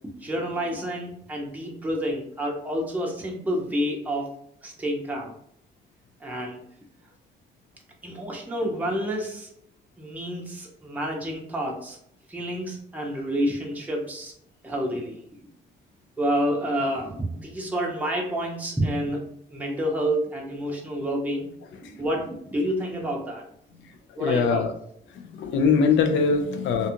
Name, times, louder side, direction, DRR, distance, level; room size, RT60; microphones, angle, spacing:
voice 1, 0.2-4.3 4.6-5.3 6.2-6.6 8.0-9.5 10.0-12.0 12.3-14.3 14.6-15.2 16.2-19.2 19.5-21.5 21.8-23.4 24.2-24.6, equal, 10° right, -1 dB, 0.6 m, -29 dB
voice 2, 23.8-24.7 25.1-26.9, left 5 dB, 70° left, 7 dB, 0.5 m, -23 dB
2.5 x 2.3 x 2.8 m, 0.69 s
cardioid pair, 90°, 20 cm